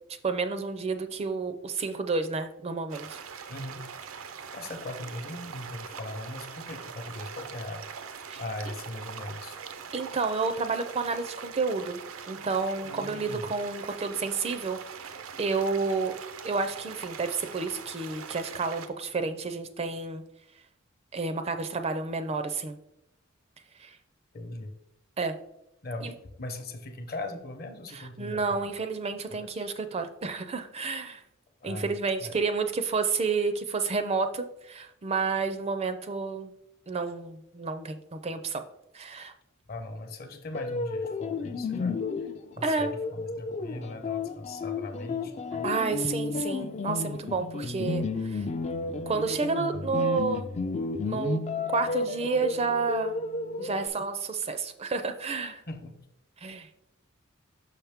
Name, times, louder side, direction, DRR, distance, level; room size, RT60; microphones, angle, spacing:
voice 1, 0.2-3.2 8.3-8.4 9.9-12.0 12.3-14.8 15.1-16.1 16.4-20.2 21.1-22.8 23.8-23.9 25.2-25.4 26.0-26.1 27.9-31.2 31.6-36.5 36.9-38.6 38.9-39.3 42.6-42.9 45.6-48.0 48.3-48.4 49.1-50.5 51.0-51.4 51.7-53.2 53.6-55.6 56.4-56.7, right 4 dB, 30° right, 9 dB, 0.4 m, -30 dB
sound 1, 2.9-18.9, right 6 dB, 80° right, 0.6 m, -42 dB
voice 2, 3.5-4.1 4.5-7.9 8.4-9.6 12.8-13.5 24.3-24.7 25.8-26.1 26.4-28.7 29.3-29.7 31.6-31.9 32.2-32.4 39.7-42.0 42.6-45.7 55.7-56.0, left 2 dB, 50° left, 6 dB, 0.8 m, -39 dB
sound 2, 40.5-53.9, left 4 dB, 35° left, 0.3 m, -32 dB
6.0 x 5.7 x 3.5 m, 0.82 s
head